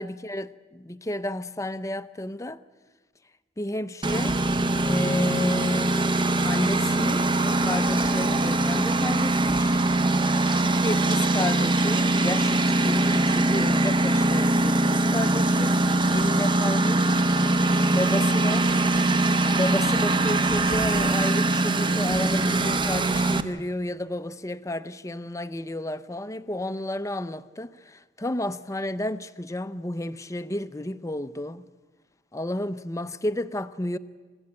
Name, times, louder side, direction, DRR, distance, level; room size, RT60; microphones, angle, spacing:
voice 1, 0.0-2.6 3.6-4.4 4.8-6.0 6.4-9.8 10.4-15.8 16.1-17.2 17.9-18.9 19.6-31.6 32.3-34.0, left 1 dB, 15° left, 0.7 m, -32 dB
Engine, 4.0-23.4, right 2 dB, 25° right, 1.0 m, -22 dB
29.0 x 16.0 x 8.9 m
head